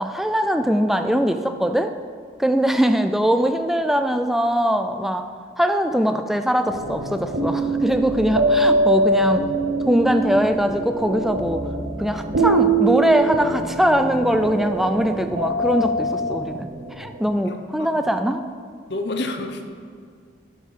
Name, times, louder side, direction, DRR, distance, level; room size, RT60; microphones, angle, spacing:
voice 1, 0.0-1.9 2.4-5.3 5.6-9.4 9.9-11.7 12.0-18.4, equal, ahead, 7 dB, 0.3 m, -21 dB
sound 1, 6.7-17.1, right 2 dB, 65° right, 1.0 m, -23 dB
voice 2, 17.2-18.1 18.9-19.6, left 2 dB, 65° left, 5 dB, 0.8 m, -30 dB
8.4 x 6.3 x 5.5 m, 2.1 s
head